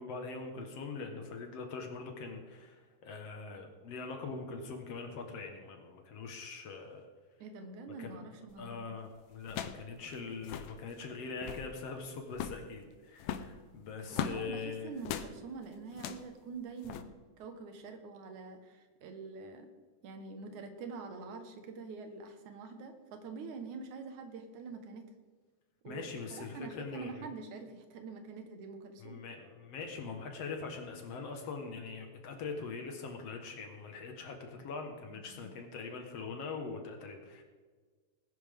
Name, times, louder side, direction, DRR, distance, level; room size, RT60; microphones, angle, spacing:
voice 1, 0.0-7.1 8.0-8.2 8.6-14.9 25.9-27.3 29.0-37.4, left 4 dB, 60° left, 4 dB, 2.2 m, -42 dB
voice 2, 7.4-8.9 14.1-19.7 20.0-25.1 25.8-29.2 35.1-35.5, right 4 dB, 75° right, 6 dB, 2.7 m, -45 dB
sound 1, 8.5-8.8 9.5-9.9 10.1-10.2 10.4-10.8 11.3-11.7 12.3-12.7 13.2-14.4 15.0-15.3 15.9-16.3 16.8-17.0, left 9 dB, 75° left, 1.8 m, -39 dB
19.0 x 10.5 x 3.6 m, 1.5 s
omnidirectional pair, 3.6 m